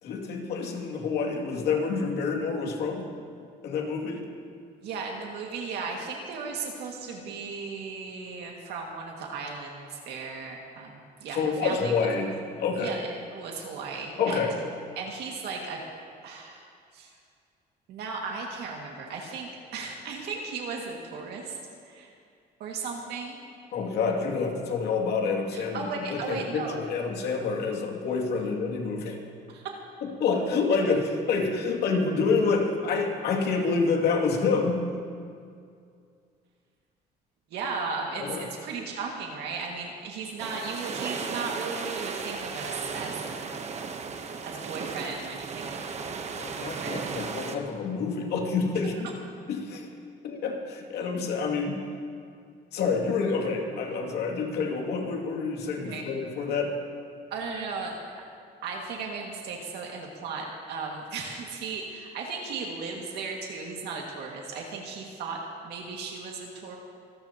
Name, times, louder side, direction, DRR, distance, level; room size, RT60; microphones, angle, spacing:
voice 1, 0.0-3.0 3.6-4.2 11.3-13.0 14.2-14.6 23.7-29.2 30.0-34.8 38.2-38.4 46.3-49.1 49.5-49.9 50.2-51.8 52.7-56.8, left 4 dB, 75° left, 0 dB, 2.5 m, -28 dB
voice 2, 4.8-12.0 12.8-13.0 13.3-14.5 15.0-15.8 16.2-16.6 16.9-17.1 17.9-21.6 21.8-22.1 22.6-23.4 25.5-26.8 29.5-29.7 37.5-43.6 44.4-45.9 46.5-47.3 48.8-48.9 55.8-56.0 57.3-58.0 58.6-66.8, right 4 dB, 80° right, -1 dB, 2.1 m, -36 dB
sound 1, 40.4-47.6, right 5 dB, 40° right, 1.1 m, -35 dB
26.5 x 13.5 x 3.0 m, 2.3 s
cardioid pair, 110°, 17 cm